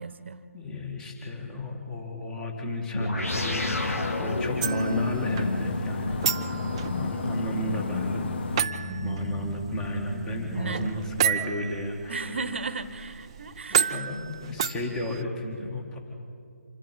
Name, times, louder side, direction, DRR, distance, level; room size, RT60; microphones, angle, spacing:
voice 1, 0.0-0.4 8.9-9.2 10.5-11.1 12.1-14.0, right 4 dB, 50° right, 14 dB, 1.1 m, -35 dB
voice 2, 0.5-8.5 9.0-12.5 13.9-16.0, left 1 dB, 10° left, 1 dB, 1.8 m, -33 dB
sound 1, 2.9-11.8, left 2 dB, 70° left, 2.8 m, -33 dB
sound 2, 3.3-8.6, left 4 dB, 45° left, 1.0 m, -32 dB
sound 3, 4.6-15.2, right 8 dB, 20° right, 0.5 m, -32 dB
26.0 x 11.0 x 10.0 m, 2.4 s
figure-of-eight pair, 155°, 8 cm